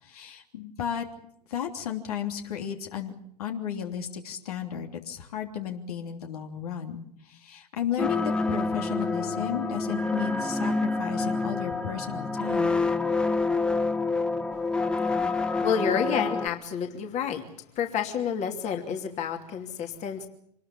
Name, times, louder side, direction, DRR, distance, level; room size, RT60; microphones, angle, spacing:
voice 1, 0.0-1.1 1.5-3.1 3.4-12.8, left 9 dB, 65° left, 3 dB, 3.2 m, -34 dB
sound 1, 8.0-16.5, left 3 dB, 5° left, 1.1 m, -27 dB
voice 2, 15.6-17.4 17.8-20.3, left 7 dB, 35° left, 4 dB, 2.9 m, -29 dB
26.0 x 20.0 x 7.3 m, 0.72 s
figure-of-eight pair, 95°, 21 cm